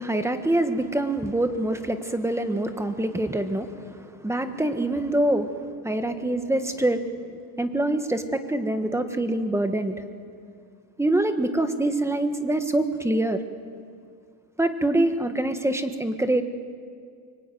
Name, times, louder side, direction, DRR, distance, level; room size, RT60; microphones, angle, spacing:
voice 1, 0.0-3.7 4.0-5.5 5.8-7.1 7.6-9.9 11.0-13.4 14.6-16.4, right 1 dB, 5° right, 8 dB, 1.5 m, -25 dB
25.0 x 23.5 x 9.3 m, 2.3 s
cardioid pair, 140°, 42 cm